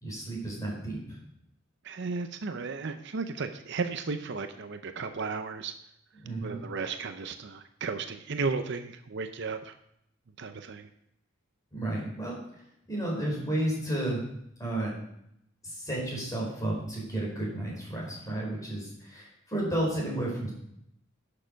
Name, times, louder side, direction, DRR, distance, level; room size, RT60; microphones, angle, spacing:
voice 1, 0.0-1.2 6.2-6.6 11.7-12.4 12.9-14.3 14.6-15.0 15.6-20.5, right 1 dB, 15° left, -3 dB, 4.5 m, -32 dB
voice 2, 1.8-5.7 6.4-9.7 10.4-10.9, right 4 dB, 60° right, 8 dB, 0.6 m, -34 dB
11.5 x 6.8 x 5.2 m, 0.76 s
head